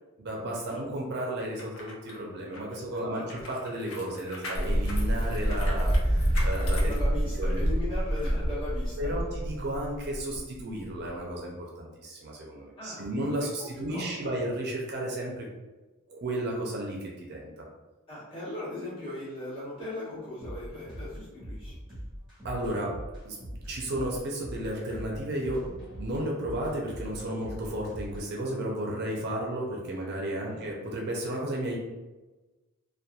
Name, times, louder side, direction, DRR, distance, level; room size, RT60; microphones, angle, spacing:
voice 1, 0.2-6.9 7.4-7.6 9.0-15.4 16.1-17.5 22.4-22.9 23.2-23.4 23.7-25.6 26.0-31.8, right 1 dB, 45° right, -2 dB, 0.4 m, -33 dB
sound 1, 1.4-7.7 8.1-8.3, left 2 dB, 60° left, 0.5 m, -43 dB
sound 2, 4.5-11.2, equal, 20° right, 0.7 m, -27 dB
voice 2, 6.8-9.2 12.8-13.1 13.6-14.1 18.1-21.7 30.5-30.7, left 1 dB, 25° left, -10 dB, 1.2 m, -38 dB
sound 3, 20.4-28.3, equal, 5° right, 1.3 m, -42 dB
2.8 x 2.2 x 2.3 m, 1.2 s
head